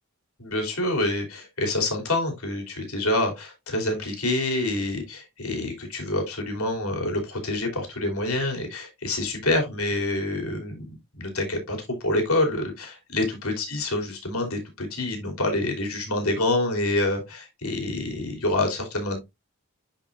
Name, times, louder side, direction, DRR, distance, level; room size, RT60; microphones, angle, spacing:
voice 1, 0.4-19.2, left 2 dB, 85° left, 2 dB, 3.1 m, -27 dB
10.5 x 4.6 x 2.5 m, 0.21 s
head